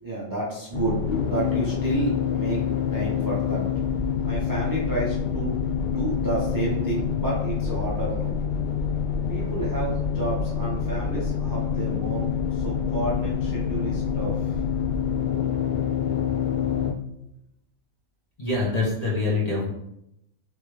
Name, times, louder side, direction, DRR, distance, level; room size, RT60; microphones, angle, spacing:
voice 1, 0.0-2.6 2.9-3.6 4.2-8.4 9.3-14.6 16.2-16.5, right 2 dB, 30° right, -5 dB, 0.4 m, -31 dB
sound 1, 0.7-16.9, left 7 dB, 60° left, 0.5 m, -26 dB
voice 2, 18.4-19.7, left 3 dB, 30° left, -4 dB, 1.0 m, -25 dB
3.4 x 3.2 x 3.1 m, 0.81 s
omnidirectional pair, 1.4 m